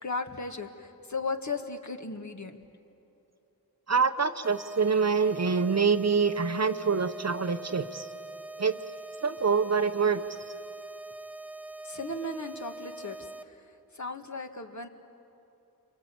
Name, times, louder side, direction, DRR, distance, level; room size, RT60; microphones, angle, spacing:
voice 1, 0.0-2.6 11.8-13.2 13.5-13.6 13.9-14.9, left 3 dB, 45° left, 5 dB, 1.9 m, -36 dB
voice 2, 3.9-8.1 8.6-8.8 9.2-10.2, right 5 dB, 45° right, 9 dB, 0.9 m, -25 dB
sound 1, 4.4-13.4, right 2 dB, 5° right, 0.6 m, -43 dB
29.5 x 23.5 x 8.5 m, 2.8 s
wide cardioid pair, 65°, 39 cm